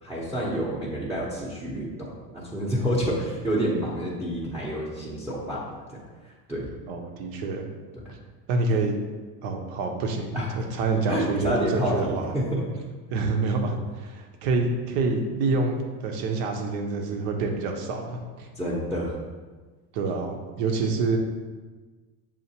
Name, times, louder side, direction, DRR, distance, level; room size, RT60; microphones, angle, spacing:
voice 1, 0.0-6.0 6.5-6.7 8.0-8.1 8.7-8.8 10.3-10.5 11.1-12.6 18.5-19.2, right 1 dB, 5° right, -6 dB, 0.7 m, -28 dB
voice 2, 6.9-7.7 8.5-9.0 9.4-12.3 13.1-18.5 19.9-21.2, right 3 dB, 70° right, 4 dB, 0.9 m, -27 dB
7.1 x 2.5 x 2.8 m, 1.4 s
supercardioid pair, 115°, 49 cm